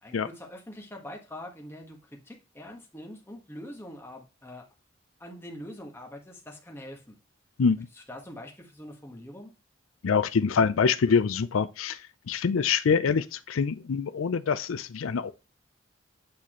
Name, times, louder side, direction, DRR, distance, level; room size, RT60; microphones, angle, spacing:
voice 1, 0.0-4.6 5.2-7.2 8.0-9.5, left 1 dB, 10° left, 1.4 m, -44 dB
voice 2, 10.0-12.0 12.3-15.3, left 5 dB, 85° left, 0.5 m, -25 dB
8.6 x 4.2 x 3.0 m
head